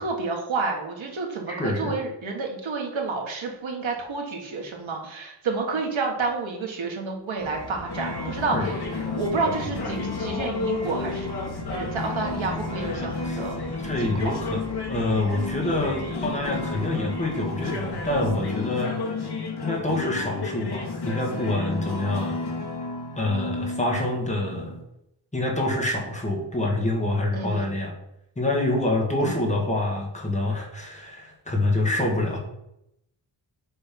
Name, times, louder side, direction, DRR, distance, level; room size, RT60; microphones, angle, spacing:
voice 1, 0.0-8.8 9.1-11.3 11.7-13.6 14.0-14.4 27.3-27.8 29.2-29.6, right 3 dB, 85° right, 1 dB, 1.6 m, -30 dB
voice 2, 1.5-1.9 8.5-8.7 13.0-13.4 13.7-14.6 14.9-19.0 19.6-22.4 23.2-24.8 25.3-27.9 28.4-32.4, left 2 dB, 15° left, -1 dB, 1.5 m, -26 dB
sound 1, 7.4-18.3, equal, 35° right, 1.8 m, -40 dB
sound 2, 7.9-24.8, left 3 dB, 55° left, 1.1 m, -31 dB
6.9 x 3.4 x 5.9 m, 0.82 s
wide cardioid pair, 180°, 46 cm